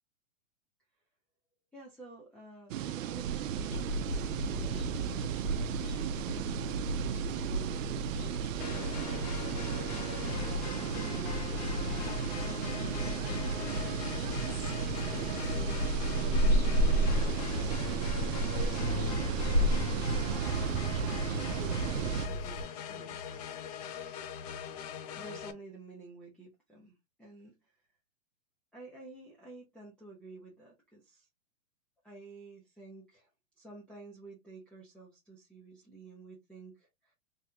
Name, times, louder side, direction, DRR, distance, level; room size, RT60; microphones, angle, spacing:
voice 1, 1.7-5.1 6.2-7.8 10.8-13.6 15.1-17.9 18.5-20.5 21.3-23.5 25.1-27.8 28.7-31.3 32.0-33.3 33.6-37.1, right 3 dB, 5° left, 0.8 m, -51 dB
sound 1, 2.7-22.3, right 9 dB, 70° right, 0.6 m, -35 dB
sound 2, 3.7-22.6, equal, 85° left, 2.0 m, -33 dB
sound 3, 8.6-25.5, left 8 dB, 30° left, 0.5 m, -42 dB
3.7 x 3.2 x 2.8 m
hypercardioid pair, 145°, 41 cm